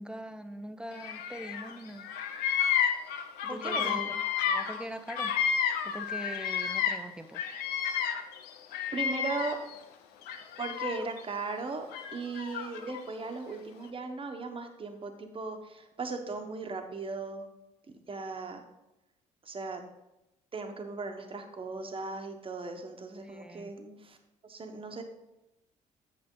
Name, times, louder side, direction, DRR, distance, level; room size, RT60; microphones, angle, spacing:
voice 1, 0.0-2.1 3.5-5.3 5.8-7.4 8.0-8.1 23.2-23.7, right 1 dB, 5° right, 9 dB, 0.8 m, -42 dB
Bird vocalization bird call bird song, 1.0-1.7 2.0-7.1 7.3-9.8 10.2-11.2 11.9-13.0, left 8 dB, 75° left, 0.7 m, -31 dB
voice 2, 3.4-4.1 8.9-9.6 10.6-11.8 12.1-17.4 18.1-18.6 19.4-19.8 20.5-24.2 24.5-25.0, right 3 dB, 35° right, 4 dB, 1.4 m, -37 dB
8.3 x 6.4 x 3.9 m, 0.91 s
hypercardioid pair, 55°, 16 cm